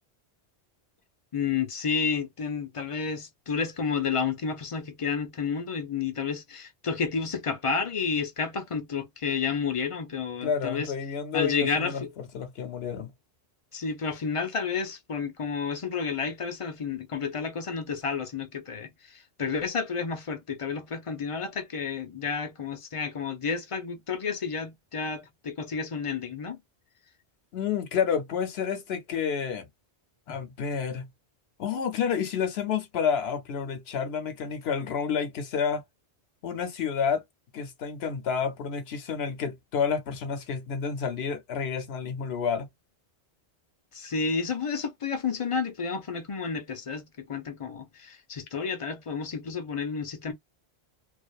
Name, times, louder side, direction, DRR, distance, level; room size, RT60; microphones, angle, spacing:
voice 1, 1.3-10.9 11.3-12.1 13.7-26.6 30.3-30.4 43.9-50.3, left 5 dB, 35° left, 0.6 m, -31 dB
voice 2, 10.4-13.1 27.5-29.7 30.3-31.1 31.6-35.8 36.4-37.2 37.5-42.7, left 6 dB, 70° left, 0.9 m, -30 dB
2.5 x 2.3 x 2.3 m
omnidirectional pair, 1.1 m